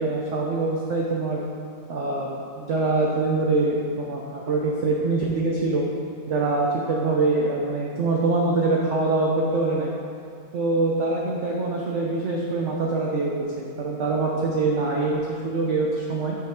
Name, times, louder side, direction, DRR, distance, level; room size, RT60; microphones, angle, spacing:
voice 1, 0.0-1.4 1.9-5.9 6.3-9.9 10.5-16.4, right 3 dB, 70° right, -2 dB, 0.7 m, -24 dB
6.1 x 5.6 x 3.6 m, 2.4 s
omnidirectional pair, 1.9 m